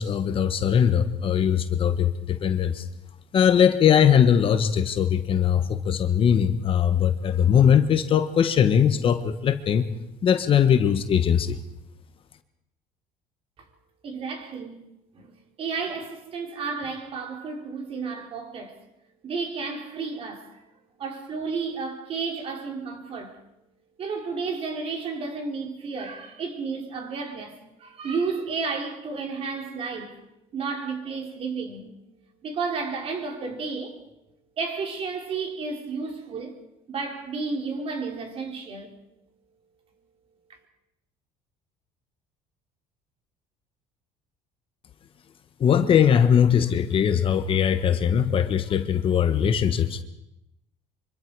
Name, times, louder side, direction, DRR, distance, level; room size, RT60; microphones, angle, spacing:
voice 1, 0.0-2.8 3.3-9.8 10.2-11.6 45.6-50.0, left 8 dB, 40° left, 1.4 m, -20 dB
voice 2, 14.0-14.8 15.1-15.3 15.6-18.8 19.2-20.6 21.0-23.4 24.0-30.2 30.5-31.9 32.4-34.0 34.6-36.5 36.9-38.9, right 4 dB, 45° right, 4.2 m, -32 dB
25.5 x 24.5 x 4.9 m
cardioid pair, 125°, 14 cm